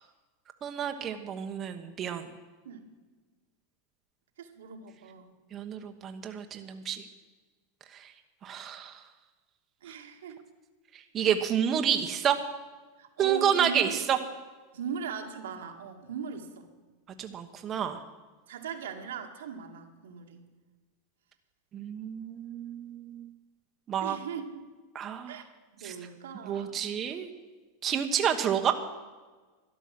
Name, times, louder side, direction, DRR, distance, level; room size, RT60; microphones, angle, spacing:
voice 1, 0.6-2.3 5.5-7.0 8.4-8.9 11.1-12.4 13.2-14.2 17.2-18.0 21.7-23.3 23.9-24.2 24.9-25.3 25.8-25.9 26.4-27.3 27.8-28.7, right 9 dB, 30° right, 5 dB, 1.1 m, -29 dB
voice 2, 4.4-5.3 9.8-10.5 13.0-14.1 14.7-16.7 18.5-20.4 24.0-24.7 25.3-25.5 25.8-26.8, right 6 dB, 90° right, 3 dB, 2.0 m, -39 dB
13.0 x 11.0 x 7.6 m, 1.3 s
supercardioid pair, 125°, 0 cm